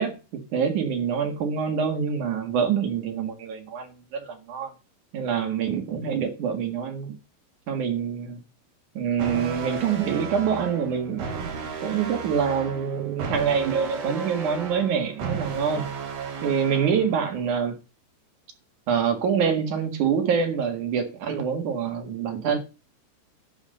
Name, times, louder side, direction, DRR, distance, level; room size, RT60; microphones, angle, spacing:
voice 1, 0.0-4.7 5.1-7.2 7.7-8.4 8.9-11.5 11.8-15.9 16.4-17.7 18.9-22.6, right 7 dB, 55° right, 2.7 m, -26 dB
sound 1, 9.2-17.2, right 5 dB, 75° right, 5.4 m, -34 dB
11.5 x 6.0 x 6.8 m
omnidirectional pair, 5.0 m